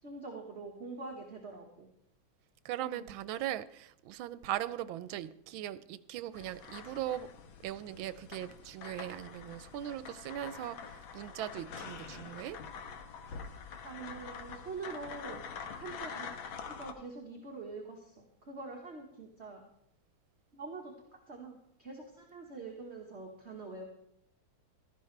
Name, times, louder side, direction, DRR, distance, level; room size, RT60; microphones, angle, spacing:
voice 1, 0.0-1.9 2.8-3.1 13.8-19.6 20.5-23.8, right 3 dB, 35° right, 0 dB, 1.6 m, -45 dB
voice 2, 2.6-7.3 7.6-10.8 11.1-12.6, right 12 dB, 85° right, 15 dB, 1.4 m, -39 dB
sound 1, 6.3-16.9, left 6 dB, 85° left, 1.9 m, -46 dB
16.5 x 13.0 x 3.3 m, 0.73 s
omnidirectional pair, 2.1 m